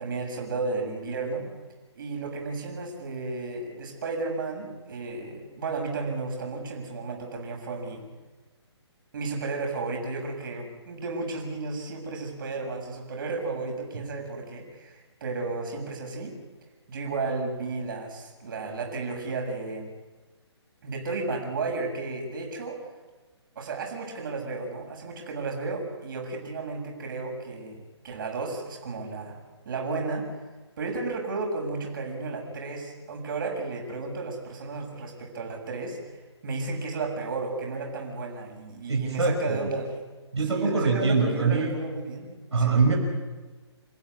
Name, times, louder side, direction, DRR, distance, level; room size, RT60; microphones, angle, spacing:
voice 1, 0.0-1.5 2.0-8.0 9.1-16.3 16.9-19.9 20.8-22.8 23.6-27.8 28.0-29.4 29.7-30.3 30.8-40.0 40.4-42.8, right 3 dB, 50° right, 2 dB, 7.0 m, -33 dB
voice 2, 38.9-39.6 40.3-41.8 42.5-43.0, right 4 dB, 70° right, 0 dB, 5.9 m, -23 dB
30.0 x 15.5 x 9.7 m, 1.3 s
figure-of-eight pair, 135°, 15 cm